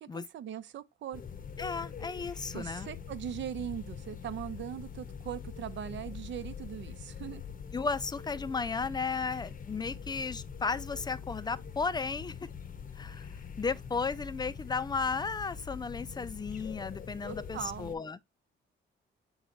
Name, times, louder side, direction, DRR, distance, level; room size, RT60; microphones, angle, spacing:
voice 1, 0.0-1.2 2.5-7.4 17.2-18.0, right 10 dB, 65° right, 0.7 m, -40 dB
sound 1, 1.1-18.0, left 7 dB, 45° left, 0.8 m, -44 dB
voice 2, 1.6-2.9 7.7-12.4 13.0-13.3 13.6-18.2, left 4 dB, 20° left, 0.5 m, -34 dB
7.8 x 3.2 x 3.8 m
cardioid pair, 90°, 20 cm